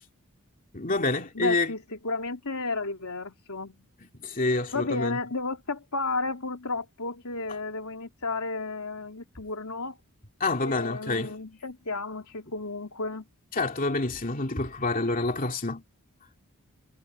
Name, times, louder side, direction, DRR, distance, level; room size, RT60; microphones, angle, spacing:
voice 1, 0.7-1.7 4.2-5.2 10.4-11.4 13.5-15.8, left 2 dB, 40° left, 2.5 m, -27 dB
voice 2, 1.3-3.8 4.7-10.0 10.6-13.2, left 3 dB, 85° left, 3.0 m, -33 dB
head